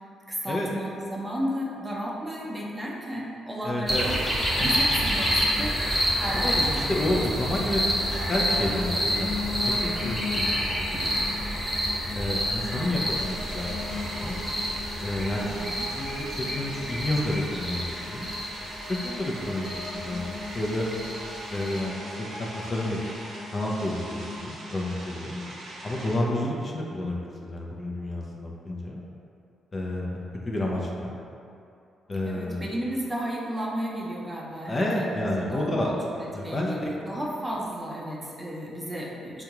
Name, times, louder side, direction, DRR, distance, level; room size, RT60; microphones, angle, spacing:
voice 1, 0.3-7.2 15.4-15.8 32.3-39.4, equal, 15° right, -4 dB, 0.6 m, -34 dB
voice 2, 3.6-4.1 6.3-11.4 12.1-14.4 15.0-18.3 18.9-20.9 21.5-23.0 23.5-25.4 25.8-29.0 29.7-31.1 32.1-32.7 34.7-35.9 36.3-36.9, left 1 dB, 35° left, -2 dB, 0.5 m, -30 dB
sound 1, 3.9-21.8, equal, 5° left, 1.0 m, -28 dB
sound 2, 8.0-24.4, left 4 dB, 80° left, 1.0 m, -39 dB
sound 3, 13.1-26.2, right 1 dB, 75° right, 0.6 m, -42 dB
3.6 x 2.3 x 2.9 m, 2.5 s
supercardioid pair, 55°, 0 cm